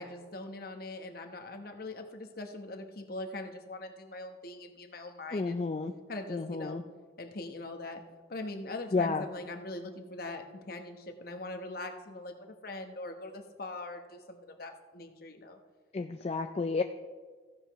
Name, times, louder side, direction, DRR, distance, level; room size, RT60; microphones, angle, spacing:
voice 1, 0.0-5.6 6.1-6.8 7.2-8.0 8.3-15.6, left 2 dB, 50° left, 5 dB, 1.0 m, -42 dB
voice 2, 5.3-5.9 6.3-6.8 8.9-9.2 15.9-16.8, left 4 dB, 35° left, 7 dB, 0.3 m, -31 dB
15.0 x 10.0 x 3.0 m, 1.4 s
head